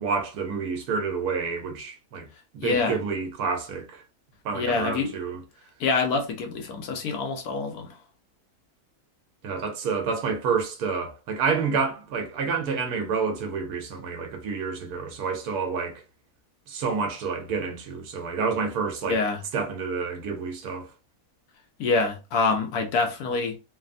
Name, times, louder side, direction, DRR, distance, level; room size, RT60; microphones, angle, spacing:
voice 1, 0.0-2.3 2.5-4.0 4.4-5.4 9.4-16.0 16.7-19.2 19.5-20.9, right 5 dB, 75° right, 1.2 m, -29 dB
voice 2, 2.6-3.0 4.5-5.1 5.8-8.0 19.0-19.4 21.8-23.6, left 4 dB, 80° left, 1.2 m, -26 dB
3.3 x 2.0 x 2.5 m
omnidirectional pair, 1.6 m